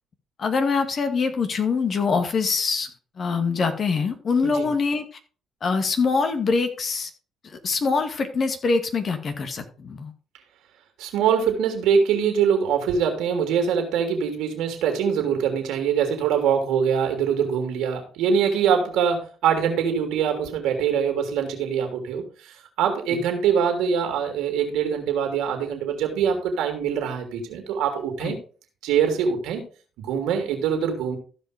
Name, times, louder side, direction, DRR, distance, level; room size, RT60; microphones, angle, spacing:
voice 1, 0.4-2.9 3.2-5.1 5.6-7.1 7.4-10.1 23.1-23.2 28.2-28.3, left 4 dB, 50° left, 7 dB, 2.1 m, -24 dB
voice 2, 11.0-28.4 28.8-29.6 30.0-31.2, right 7 dB, 75° right, 4 dB, 3.1 m, -23 dB
14.5 x 5.3 x 5.1 m, 0.38 s
hypercardioid pair, 55°, 0 cm